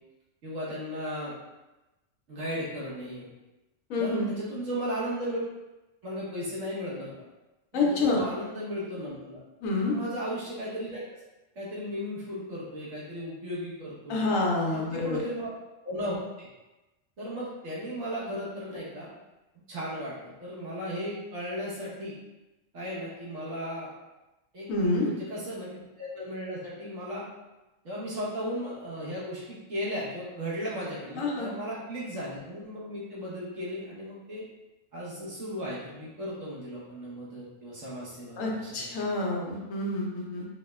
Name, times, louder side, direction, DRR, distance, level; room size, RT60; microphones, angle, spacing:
voice 1, 0.4-1.3 2.3-3.3 4.0-5.4 6.0-7.1 7.7-9.4 9.9-11.0 11.5-14.3 14.7-15.5 15.8-16.5 17.2-19.1 19.7-22.2 22.7-23.9 24.5-24.7 25.0-25.7 26.0-27.3 27.8-34.4 34.9-38.9, equal, 75° right, -7 dB, 1.4 m, -36 dB
voice 2, 3.9-4.3 7.7-8.2 9.6-10.0 14.1-15.2 24.7-25.1 31.1-31.5 38.4-40.5, left 2 dB, 85° left, -2 dB, 1.1 m, -27 dB
4.8 x 2.0 x 2.3 m, 1.0 s
omnidirectional pair, 1.3 m